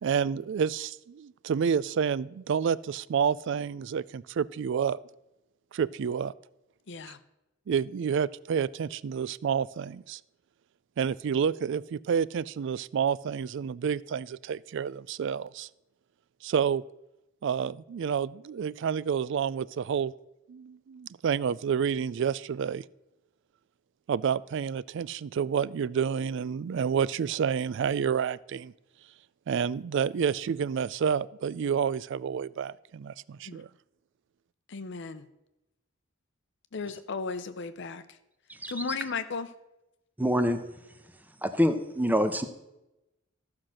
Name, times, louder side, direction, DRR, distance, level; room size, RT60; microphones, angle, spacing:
voice 1, 0.0-5.0 5.7-6.3 7.7-10.2 11.0-15.7 16.4-16.8 17.4-20.1 20.5-22.8 24.1-28.7 29.5-33.7, right 7 dB, 65° right, 21 dB, 0.3 m, -29 dB
voice 2, 6.9-7.2 33.5-33.6 34.7-35.2 36.7-38.0 38.7-39.5, left 4 dB, 60° left, 12 dB, 0.7 m, -35 dB
voice 3, 40.2-40.6 41.4-42.4, equal, 10° right, 9 dB, 0.9 m, -25 dB
14.5 x 5.8 x 6.4 m, 0.93 s
head